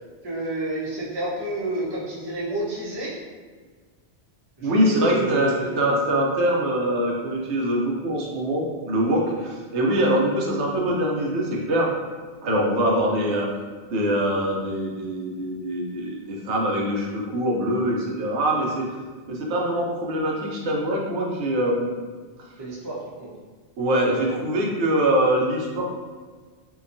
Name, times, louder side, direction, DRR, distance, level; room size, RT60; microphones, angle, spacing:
voice 1, 0.2-3.2 4.6-5.7 22.6-23.3, right 2 dB, 30° right, -6 dB, 0.5 m, -29 dB
voice 2, 4.6-11.9 12.4-13.5 13.9-18.8 19.3-21.9 23.8-25.8, right 1 dB, 85° right, -2 dB, 0.9 m, -23 dB
2.8 x 2.2 x 2.5 m, 1.5 s
omnidirectional pair, 1.1 m